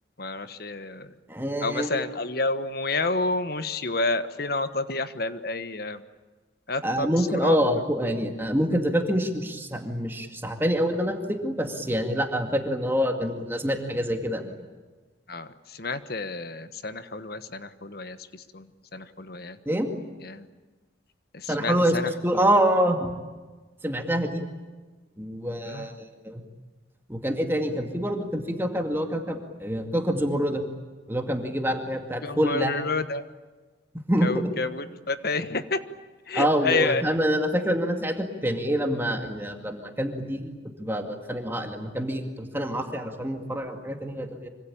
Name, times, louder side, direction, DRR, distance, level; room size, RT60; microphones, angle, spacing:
voice 1, 0.2-1.1 1.6-6.0 6.7-7.6 15.3-19.6 20.2-20.5 21.3-22.4 25.7-25.9 32.2-33.2 34.2-35.8 36.3-37.0, left 3 dB, 55° left, 11 dB, 1.4 m, -30 dB
voice 2, 1.3-2.0 6.8-14.5 19.7-19.9 21.5-22.0 22.2-23.1 23.8-24.4 25.2-25.9 26.2-26.4 27.1-30.6 31.1-32.7 34.1-34.3 36.4-40.5 40.8-44.5, equal, 10° right, 4 dB, 2.3 m, -26 dB
25.5 x 25.5 x 8.8 m, 1.3 s
head